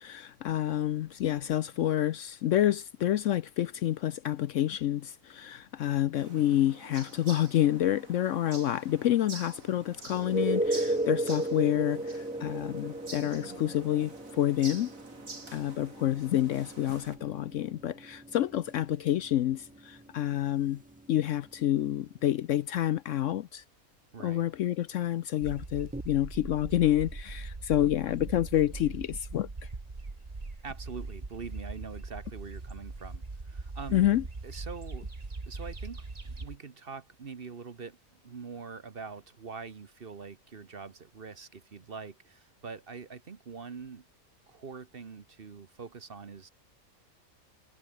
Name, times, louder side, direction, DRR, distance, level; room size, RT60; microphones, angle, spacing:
voice 1, 0.0-14.9 15.5-20.8 21.1-23.6 24.2-29.5 33.9-34.2, left 12 dB, 65° left, 0.8 m, -28 dB
sound 1, 6.2-17.2, right 3 dB, 60° right, 3.7 m, -48 dB
sound 2, 10.1-21.7 25.9-26.0, right 1 dB, 10° right, 0.5 m, -36 dB
voice 2, 24.1-24.5 30.6-34.1 34.4-35.1 35.5-38.0 38.2-44.1 44.5-46.5, right 5 dB, 40° right, 1.2 m, -44 dB
sound 3, 25.4-36.6, right 3 dB, 25° right, 1.8 m, -41 dB
omnidirectional pair, 1.6 m